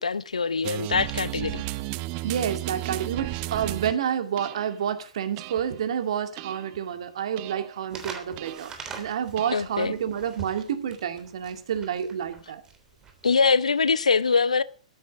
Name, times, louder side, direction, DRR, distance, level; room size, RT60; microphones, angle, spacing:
voice 1, 0.0-1.6 9.5-9.9 13.2-14.6, left 5 dB, 75° left, 0.8 m, -23 dB
sound 1, 0.6-3.9 4.4-4.7 5.4-5.8 6.4-6.8 7.4-7.8 8.4-8.8 9.4-9.8, right 18 dB, 35° right, 0.8 m, -34 dB
voice 2, 2.2-12.6, right 8 dB, 55° right, 2.3 m, -29 dB
sound 2, 7.9-13.3, right 5 dB, 15° right, 3.3 m, -42 dB
14.0 x 12.5 x 6.2 m
figure-of-eight pair, 110°, 4 cm